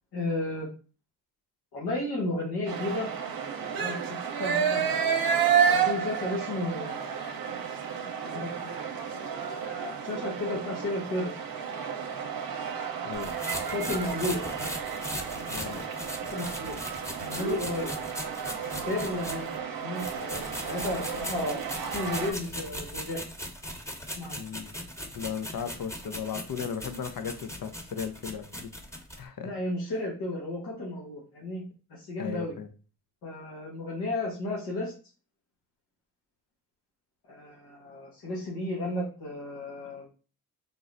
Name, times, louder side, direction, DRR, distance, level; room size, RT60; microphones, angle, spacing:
voice 1, 0.1-0.7 1.7-3.1 3.7-5.1 5.6-7.2 8.3-8.7 9.6-11.3 13.7-14.7 15.3-16.7 17.1-17.9 18.6-19.5 19.7-21.6 21.9-23.2 24.2-24.4 29.4-31.6 31.9-32.5 33.2-34.9 37.3-40.1, left 2 dB, 80° left, -5 dB, 1.3 m, -33 dB
sound 1, 2.7-22.3, right 7 dB, 60° right, 0.7 m, -31 dB
sound 2, 13.1-19.6 20.0-29.2, equal, 5° left, 0.9 m, -39 dB
voice 2, 15.5-15.8 24.3-24.7 25.1-28.7 29.2-29.5 32.2-32.7, left 7 dB, 60° left, 9 dB, 0.7 m, -36 dB
3.8 x 2.0 x 3.8 m, 0.35 s
supercardioid pair, 45°, 39 cm